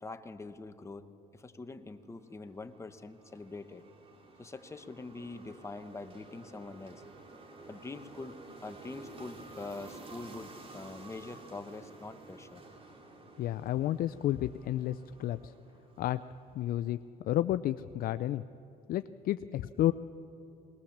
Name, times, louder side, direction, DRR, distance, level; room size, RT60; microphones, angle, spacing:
voice 1, 0.0-3.8 4.4-7.0 7.7-8.3 8.6-12.6, left 3 dB, 15° left, 9 dB, 1.0 m, -44 dB
sound 1, 2.3-16.6, right 2 dB, 35° right, 2.5 m, -52 dB
voice 2, 13.4-15.5 16.0-16.2 16.5-17.0 17.2-18.4 18.9-19.9, left 13 dB, 60° left, 12 dB, 0.4 m, -31 dB
20.5 x 20.0 x 7.3 m, 2.9 s
cardioid pair, 110°, 17 cm